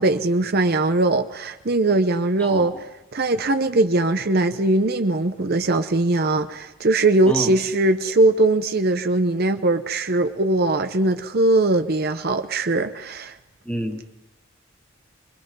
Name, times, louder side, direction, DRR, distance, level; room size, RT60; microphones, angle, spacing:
voice 1, 0.0-2.7 3.1-13.3, right 2 dB, 50° right, 0.8 m, -20 dB
voice 2, 2.4-2.8 7.3-7.5 13.6-14.0, equal, 5° left, 1.9 m, -29 dB
24.5 x 22.5 x 5.4 m
head